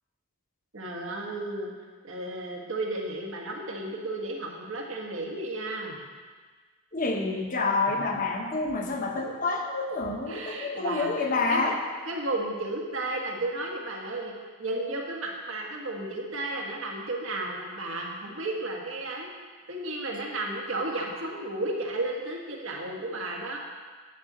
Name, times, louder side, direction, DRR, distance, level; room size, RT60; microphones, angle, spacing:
voice 1, 0.7-1.7 2.0-6.1 8.0-8.1 8.8-8.9 10.3-11.8 12.0-14.3 14.6-19.3 19.7-23.6, right 2 dB, 75° right, -1 dB, 1.7 m, -33 dB
voice 2, 6.9-11.8, left 3 dB, 40° left, 3 dB, 1.0 m, -28 dB
10.5 x 8.2 x 4.3 m, 1.5 s
head